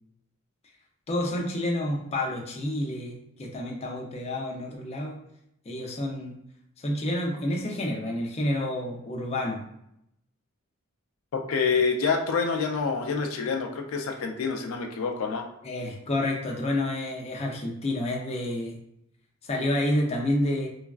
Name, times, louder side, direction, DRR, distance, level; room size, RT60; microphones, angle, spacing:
voice 1, 1.1-5.2 5.7-6.3 6.8-9.6 15.6-18.8 19.4-20.7, left 1 dB, 30° left, 0 dB, 0.5 m, -29 dB
voice 2, 11.3-15.5, left 5 dB, 85° left, 4 dB, 0.4 m, -27 dB
3.2 x 2.3 x 2.3 m, 0.76 s
head